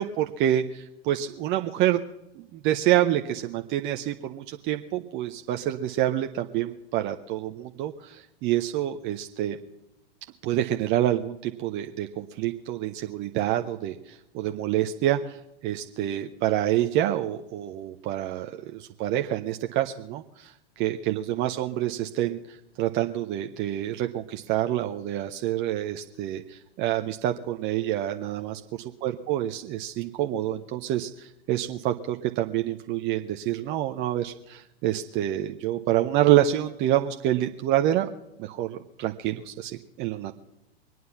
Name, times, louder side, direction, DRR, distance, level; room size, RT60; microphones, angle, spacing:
voice 1, 0.0-2.0 2.4-9.6 10.4-28.6 29.0-38.1 38.4-40.3, right 13 dB, 35° right, 5 dB, 0.8 m, -27 dB
23.5 x 9.4 x 5.8 m, 0.88 s
hypercardioid pair, 100°, 32 cm